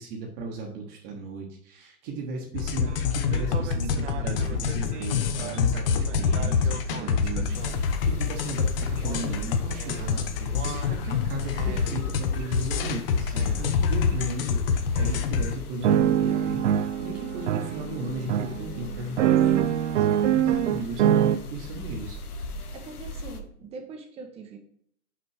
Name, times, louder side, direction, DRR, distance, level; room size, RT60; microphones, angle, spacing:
voice 1, 0.0-19.7 20.3-22.2, right 2 dB, 30° right, -1 dB, 1.2 m, -36 dB
sound 1, 2.5-15.6, left 6 dB, 40° left, 0.8 m, -26 dB
sound 2, 2.9-3.0 3.3-7.7 9.1-9.2 9.8-10.1 10.5-11.0 11.6-11.9 12.5-12.8 13.4-13.5 14.2-14.3 15.0-15.1 15.8-21.4, right 10 dB, 55° right, 0.5 m, -26 dB
sound 3, 7.5-23.4, left 2 dB, 75° left, 1.1 m, -41 dB
voice 2, 20.0-20.4 22.7-24.6, right 4 dB, 15° right, 4 dB, 0.8 m, -43 dB
5.9 x 5.1 x 4.8 m, 0.66 s
hypercardioid pair, 130°, 45 cm